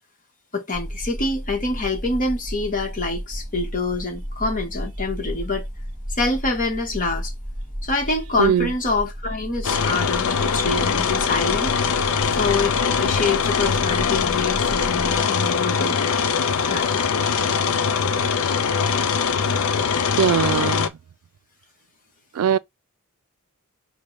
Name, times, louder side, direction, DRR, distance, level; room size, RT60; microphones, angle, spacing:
voice 1, 0.5-5.7 6.1-7.3 7.8-11.7 12.3-16.0 16.7-16.9, left 3 dB, 40° left, 1.2 m, -26 dB
sound 1, 0.7-15.2, equal, 20° left, 2.7 m, -33 dB
sound 2, 9.6-20.9, left 6 dB, 65° left, 0.5 m, -22 dB
voice 2, 20.2-20.9 22.4-22.6, right 8 dB, 75° right, 0.3 m, -20 dB
5.1 x 2.2 x 3.9 m
head